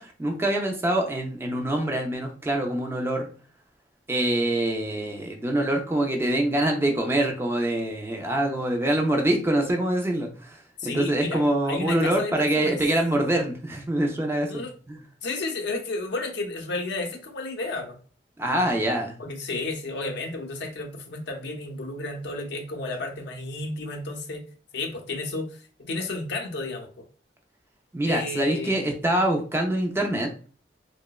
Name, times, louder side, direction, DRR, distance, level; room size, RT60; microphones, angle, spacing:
voice 1, 0.0-3.3 4.1-15.0 18.4-19.2 27.9-30.3, right 1 dB, 15° right, 2 dB, 0.3 m, -25 dB
voice 2, 10.8-12.8 14.5-14.7 15.2-18.0 19.2-24.4 24.7-26.9 28.1-28.9, left 2 dB, 65° left, 3 dB, 0.6 m, -32 dB
2.8 x 2.0 x 2.2 m, 0.39 s
head